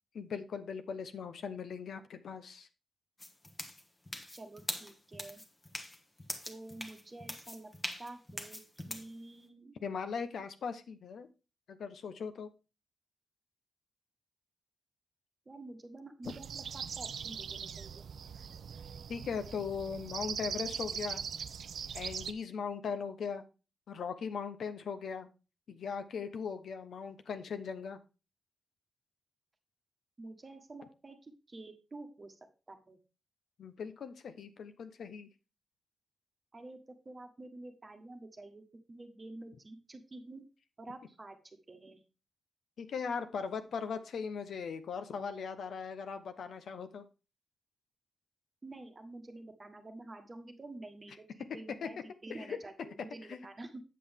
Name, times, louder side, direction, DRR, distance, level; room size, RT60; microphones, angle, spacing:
voice 1, 0.1-2.7 9.8-11.3 11.7-12.5 19.1-21.2 21.9-23.4 23.9-25.3 25.7-28.0 33.6-35.3 42.8-47.0 51.8-51.9 52.3-52.6 53.3-53.4, left 6 dB, 60° left, 9 dB, 0.8 m, -39 dB
sound 1, 3.2-9.1, left 1 dB, 15° left, 1.2 m, -42 dB
voice 2, 4.3-5.4 6.4-7.7 8.0-8.6 8.9-9.8 15.4-18.1 30.2-32.3 32.7-33.0 36.5-36.8 37.0-40.4 40.8-42.0 48.6-53.8, right 2 dB, 25° right, 5 dB, 1.3 m, -49 dB
sound 2, 16.2-22.3, right 7 dB, 60° right, 0.5 m, -41 dB
8.4 x 7.7 x 3.6 m, 0.32 s
wide cardioid pair, 140°, 0 cm